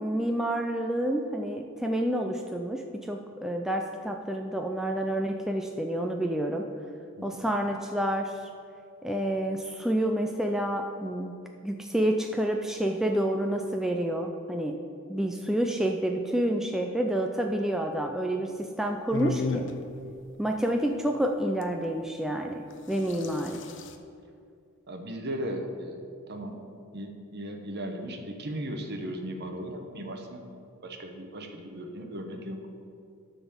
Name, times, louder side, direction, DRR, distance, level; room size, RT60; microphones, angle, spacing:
voice 1, 0.0-2.8 3.1-6.6 7.2-8.3 9.0-11.3 11.6-14.8 15.1-19.7 20.4-23.6, right 1 dB, ahead, 2 dB, 0.4 m, -29 dB
sound 1, 19.1-19.7 21.6-21.7 22.7-24.0, left 4 dB, 60° left, 0.6 m, -33 dB
voice 2, 24.9-26.0 26.3-26.6 26.9-30.4 30.8-32.6, right 1 dB, 50° right, 4 dB, 1.0 m, -36 dB
12.0 x 4.1 x 7.0 m, 2.4 s
head